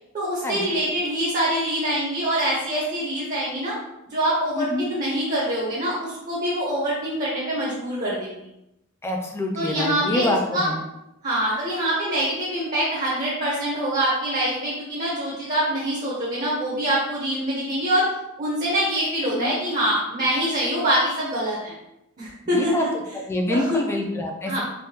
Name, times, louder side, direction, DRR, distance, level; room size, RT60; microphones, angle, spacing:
voice 1, 0.1-3.8 4.1-8.4 9.5-10.7 11.2-18.1 18.4-21.7 22.2-22.9 23.5-23.8 24.5-24.6, right 1 dB, 40° right, -6 dB, 0.7 m, -25 dB
voice 2, 9.0-10.8 19.3-19.5 22.4-22.8 23.1-24.6, left 1 dB, 10° left, 1 dB, 0.3 m, -26 dB
3.4 x 2.2 x 2.7 m, 0.88 s
head